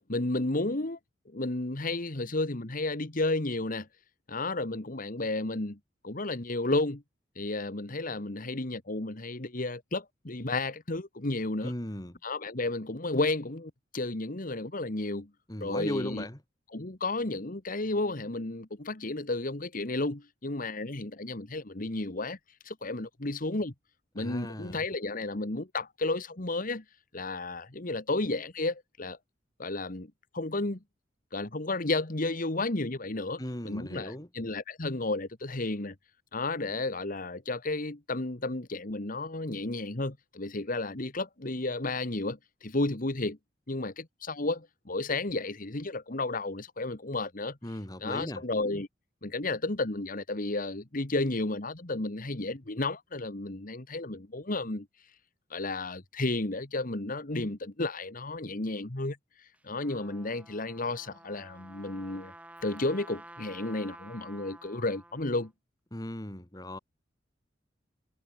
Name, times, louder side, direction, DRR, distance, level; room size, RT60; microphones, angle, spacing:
voice 1, 0.1-1.0 1.3-3.9 4.3-5.8 6.0-7.0 7.4-11.7 12.2-15.3 15.6-16.2 16.7-22.4 22.6-23.7 24.2-26.8 27.1-29.2 29.6-30.8 31.3-36.0 36.3-43.4 43.7-47.6 48.0-48.9 49.2-54.9 55.5-62.3 62.6-65.5, left 2 dB, 45° left, 1.7 m, -32 dB
voice 2, 11.6-12.2 15.5-16.4 24.2-24.8 33.4-34.3 47.6-48.4 65.9-66.8, left 1 dB, 20° left, 2.4 m, -37 dB
Trumpet, 59.5-65.5, right 1 dB, 5° right, 2.7 m, -51 dB
head